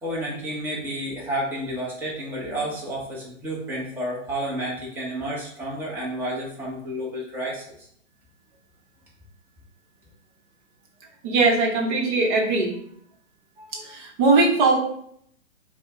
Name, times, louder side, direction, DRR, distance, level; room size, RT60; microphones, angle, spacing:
voice 1, 0.0-7.9, right 1 dB, 5° right, -6 dB, 1.1 m, -31 dB
voice 2, 11.2-12.7 13.6-14.8, right 3 dB, 40° right, -1 dB, 1.1 m, -20 dB
5.0 x 2.4 x 3.6 m, 0.66 s
hypercardioid pair, 130°, 36 cm